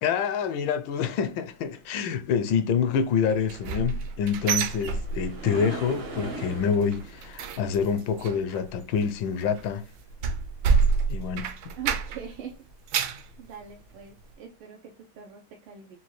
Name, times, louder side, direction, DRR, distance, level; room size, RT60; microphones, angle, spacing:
voice 1, 0.0-9.8 11.1-11.5, left 6 dB, 75° left, 1.2 m, -27 dB
sound 1, 3.3-5.6 5.9-6.3 6.6-12.4 12.7-13.3 13.8-13.9 14.3-14.4, right 5 dB, 70° right, 1.2 m, -28 dB
sound 2, 4.0-9.3 13.2-13.3 13.9-14.0, right 2 dB, 55° right, 0.7 m, -40 dB
voice 2, 11.8-12.6 13.4-16.0, right 7 dB, 90° right, 1.5 m, -42 dB
6.1 x 2.2 x 3.0 m
omnidirectional pair, 2.3 m